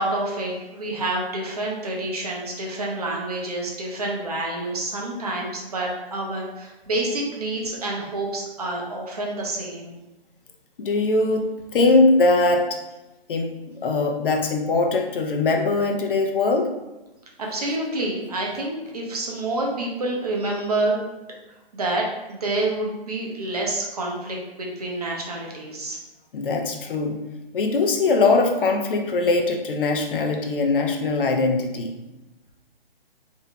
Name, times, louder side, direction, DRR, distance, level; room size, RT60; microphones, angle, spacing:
voice 1, 0.0-9.9 17.4-21.0 21.7-26.0, right 2 dB, 40° right, -1 dB, 0.5 m, -28 dB
voice 2, 10.8-11.5 11.7-12.8 13.3-16.7 26.3-27.2 27.5-31.9, left 3 dB, 60° left, 3 dB, 0.5 m, -21 dB
2.6 x 2.1 x 2.8 m, 1.0 s
hypercardioid pair, 170°, 30 cm